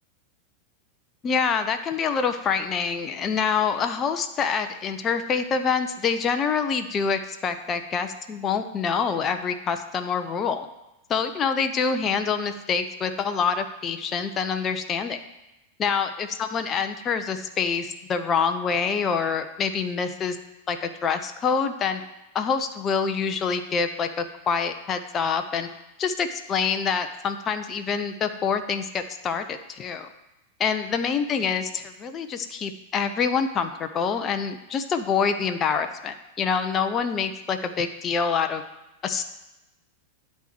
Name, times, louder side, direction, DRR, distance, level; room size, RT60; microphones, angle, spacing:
voice 1, 1.2-10.7 11.1-15.2 15.8-20.4 20.7-22.0 22.3-25.7 26.0-30.1 30.6-38.6 39.0-39.2, left 6 dB, 25° left, 8 dB, 0.7 m, -26 dB
10.5 x 4.4 x 7.5 m, 0.95 s
figure-of-eight pair, 90°, 0 cm